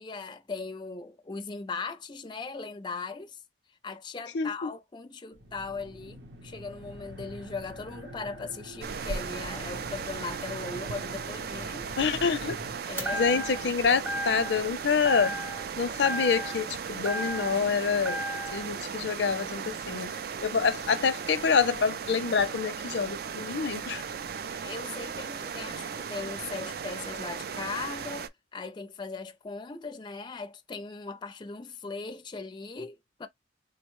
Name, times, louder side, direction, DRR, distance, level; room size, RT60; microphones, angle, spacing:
voice 1, 0.0-3.4 3.8-11.9 12.9-13.4 24.6-33.3, left 4 dB, 25° left, 0.4 m, -39 dB
voice 2, 4.3-4.7 12.0-12.6 13.1-15.4 15.8-18.2 18.5-24.0, left 5 dB, 80° left, 0.5 m, -27 dB
sound 1, 5.3-12.8, equal, 85° right, 0.8 m, -45 dB
sound 2, 8.8-28.3, right 6 dB, 60° right, 0.4 m, -37 dB
sound 3, 13.0-13.7 14.1-14.7 15.0-15.7 16.0-17.7 18.0-18.7, equal, 15° right, 0.9 m, -34 dB
3.8 x 2.1 x 3.0 m
head